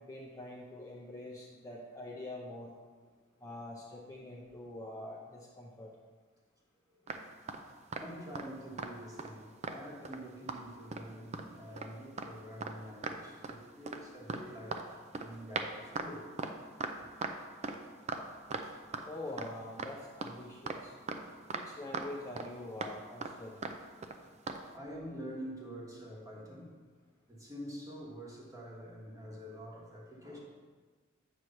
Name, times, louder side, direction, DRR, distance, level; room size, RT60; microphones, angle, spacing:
voice 1, 0.0-2.7 3.4-5.9 19.0-20.9 21.5-23.6, left 1 dB, 15° left, -4 dB, 0.6 m, -45 dB
sound 1, 7.1-8.5 8.8-8.9 9.2-10.2 10.5-10.6 10.9-11.5 11.7-11.9 12.2-12.3 12.6-12.8 13.0-13.6 13.9-19.1 19.4-19.5 19.8-21.7 21.9-22.5 22.8-23.0 23.2-23.4 23.6-23.8 24.0-24.2 24.5-24.6, right 4 dB, 30° right, 0.4 m, -38 dB
voice 2, 8.0-16.3 18.4-18.8 24.2-24.4 24.7-26.8 27.3-30.4, equal, 15° right, -3 dB, 1.3 m, -47 dB
8.3 x 3.1 x 6.4 m, 1.5 s
head